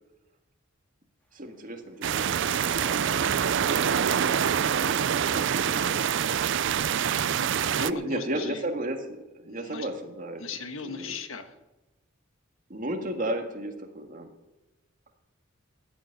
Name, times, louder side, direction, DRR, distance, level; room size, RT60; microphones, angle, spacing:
voice 1, 1.3-3.3 3.6-6.1 7.8-10.4 10.8-11.2 12.7-14.3, right 1 dB, 40° right, 4 dB, 1.9 m, -34 dB
sound 1, 2.0-7.9, right 8 dB, 60° right, 0.4 m, -25 dB
sound 2, 2.7-8.0, equal, 5° left, 2.1 m, -46 dB
voice 2, 7.3-8.6 9.5-9.9 10.4-11.5, left 4 dB, 75° left, 8 dB, 1.4 m, -39 dB
15.0 x 7.1 x 9.9 m, 1.0 s
head